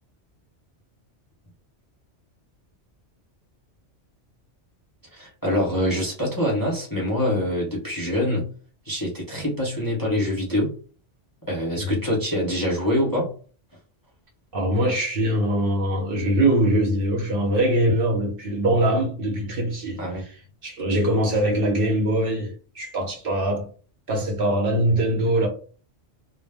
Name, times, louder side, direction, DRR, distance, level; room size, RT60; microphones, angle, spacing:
voice 1, 5.1-8.5 8.9-10.7 11.5-13.3 20.0-20.2, left 1 dB, 20° left, 0.6 m, -25 dB
voice 2, 14.5-20.0 20.6-23.7 24.1-25.5, right 1 dB, 55° right, 0.8 m, -22 dB
2.2 x 2.0 x 3.3 m
omnidirectional pair, 1.2 m